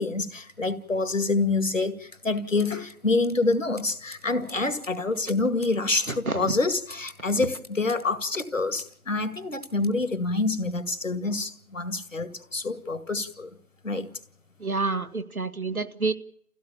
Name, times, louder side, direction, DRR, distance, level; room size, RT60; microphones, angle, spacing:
voice 1, 0.0-13.5 13.8-14.1, left 3 dB, 65° left, 2.3 m, -27 dB
sound 1, 2.6-9.0 9.2-10.0, left 1 dB, 25° right, 1.3 m, -49 dB
voice 2, 6.1-6.5 14.6-16.1, right 3 dB, 90° right, 2.2 m, -28 dB
27.0 x 16.5 x 7.1 m
figure-of-eight pair, 180°, 42 cm